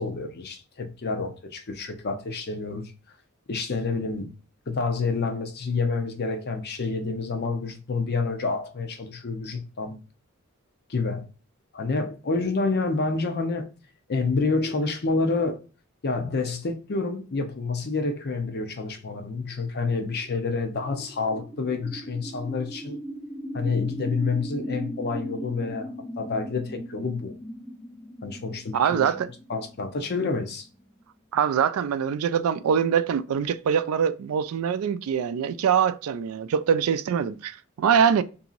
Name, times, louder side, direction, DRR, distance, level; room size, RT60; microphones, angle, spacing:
voice 1, 0.0-2.9 3.5-4.3 4.7-10.0 10.9-11.3 11.7-13.7 14.1-15.6 16.0-23.0 23.5-25.9 26.2-27.4 28.2-29.1 29.5-30.7, left 3 dB, 50° left, 0.6 m, -28 dB
sound 1, 19.0-31.0, equal, 5° left, 0.3 m, -38 dB
voice 2, 28.7-29.3 31.3-38.2, right 7 dB, 85° right, 0.3 m, -23 dB
2.9 x 2.7 x 2.5 m
head